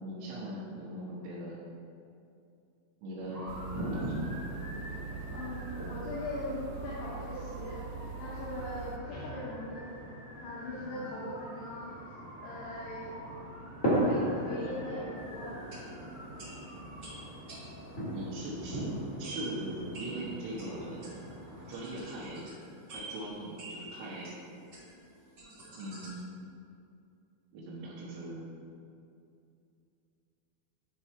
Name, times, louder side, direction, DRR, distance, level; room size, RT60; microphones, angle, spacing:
voice 1, 0.0-1.6 3.0-4.3 10.9-11.1 18.1-21.2 21.7-22.5 22.9-24.3 25.8-26.2 27.5-28.4, right 1 dB, 70° right, -8 dB, 3.4 m, -40 dB
sound 1, 3.2-22.2, right 1 dB, 90° left, 0.7 m, -38 dB
sound 2, 3.5-9.0, right 6 dB, 90° right, 2.5 m, -43 dB
voice 2, 5.3-7.8 8.2-9.9 10.4-12.0 12.4-13.1 13.9-15.6, left 1 dB, 70° left, -8 dB, 3.0 m, -40 dB
sound 3, 15.6-26.2, right 2 dB, 50° right, 1.6 m, -48 dB
11.0 x 5.4 x 4.4 m, 2.5 s
omnidirectional pair, 5.7 m